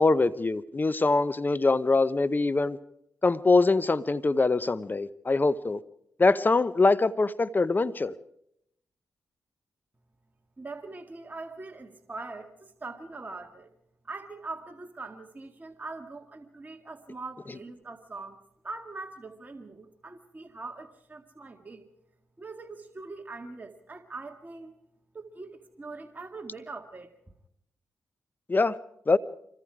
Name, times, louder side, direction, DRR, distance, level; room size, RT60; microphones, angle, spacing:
voice 1, 0.0-2.8 3.2-5.8 6.2-8.1 28.5-28.7 29.1-29.2, left 3 dB, 30° left, 16 dB, 0.8 m, -23 dB
voice 2, 10.6-13.7 14.0-21.9 22.4-24.8 25.1-27.3, right 3 dB, 30° right, 3 dB, 2.0 m, -42 dB
25.5 x 22.0 x 4.9 m, 0.76 s
cardioid pair, 60°, 6 cm